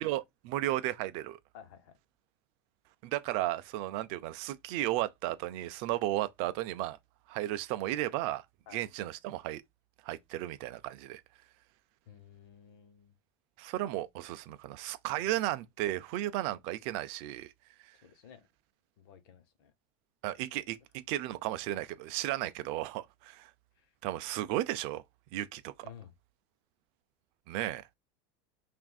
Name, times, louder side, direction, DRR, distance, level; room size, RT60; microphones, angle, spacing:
voice 1, 0.0-1.4 3.0-7.0 7.3-8.4 8.7-9.6 10.0-11.2 13.6-17.5 20.2-23.5 24.0-25.0 25.3-25.9 27.5-27.8, right 15 dB, 45° right, 0.4 m, -34 dB
voice 2, 1.5-2.0 8.7-8.9 12.1-13.1 15.2-15.3 18.0-18.5 19.0-19.7 23.8-23.9 25.8-26.1, left 8 dB, 60° left, 1.1 m, -54 dB
5.9 x 2.5 x 2.3 m
supercardioid pair, 175°, 13 cm